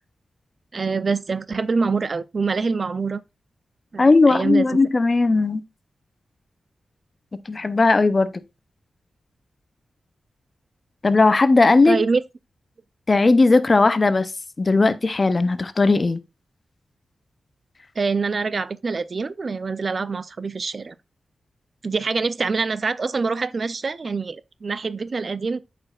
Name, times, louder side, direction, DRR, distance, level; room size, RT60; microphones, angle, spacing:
voice 1, 0.7-3.2 3.9-4.8 11.8-12.2 18.0-20.9 21.8-25.6, right 4 dB, 50° right, 0.3 m, -25 dB
voice 2, 4.0-5.6 7.5-8.3 11.0-12.0 13.1-14.3 14.6-16.2, left 3 dB, 35° left, 0.5 m, -17 dB
8.3 x 5.0 x 2.3 m
cardioid pair, 80°, 0 cm